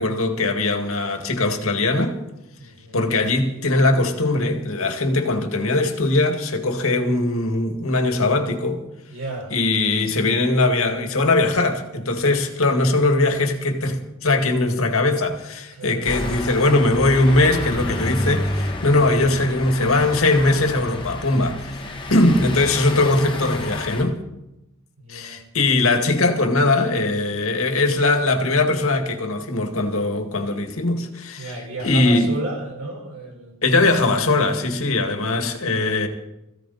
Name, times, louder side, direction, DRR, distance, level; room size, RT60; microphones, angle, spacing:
voice 1, 0.0-2.2 2.9-8.8 9.5-21.8 22.1-24.2 25.1-31.5 31.8-32.4 33.6-36.1, left 2 dB, 65° left, 2.1 m, -20 dB
voice 2, 2.6-3.1 9.1-9.5 15.7-16.1 25.0-25.4 31.4-33.5, right 1 dB, 65° right, 5.0 m, -33 dB
sound 1, 16.0-24.0, left 1 dB, 20° left, 1.9 m, -30 dB
21.0 x 15.5 x 4.3 m
head